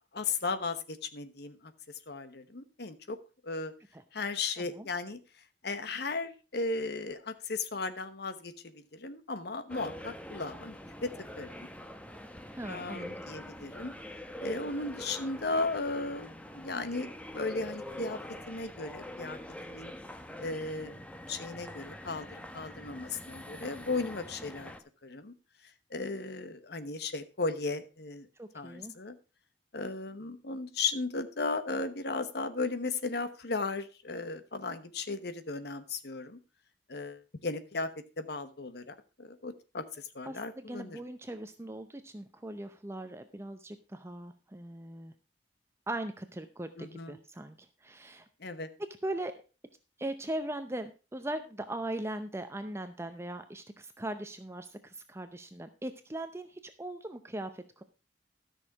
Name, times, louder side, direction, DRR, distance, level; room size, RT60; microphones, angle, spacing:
voice 1, 0.1-1.7 2.1-3.2 3.4-3.7 4.1-5.2 5.6-11.7 12.6-13.9 14.4-18.2 18.5-19.4 19.7-19.9 20.4-21.0 21.3-24.7 25.0-25.3 25.9-28.3 28.5-29.2 29.7-36.4 36.9-37.9 38.2-41.0 46.8-47.2 48.4-48.7, left 3 dB, 65° left, 11 dB, 1.1 m, -36 dB
voice 2, 4.6-4.9 12.6-13.1 28.4-28.9 40.3-45.1 45.9-48.3 49.0-49.3 50.0-57.8, right 1 dB, 15° right, 8 dB, 0.7 m, -39 dB
sound 1, 9.7-24.8, left 1 dB, 10° left, 0.9 m, -44 dB
13.0 x 6.4 x 4.7 m, 0.32 s
head